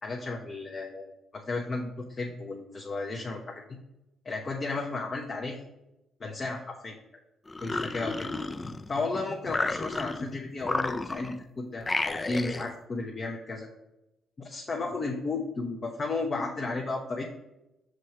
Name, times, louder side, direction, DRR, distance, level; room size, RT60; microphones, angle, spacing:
voice 1, 0.0-3.8 4.2-5.6 6.2-6.9 7.6-8.3 8.6-13.7 14.4-17.2, left 3 dB, 35° left, 0 dB, 0.8 m, -34 dB
sound 1, 7.5-9.0 9.5-10.3 10.6-11.4 11.8-12.7, left 2 dB, 20° left, 0.4 m, -32 dB
6.3 x 3.2 x 5.6 m, 0.93 s
cardioid pair, 90°, 0 cm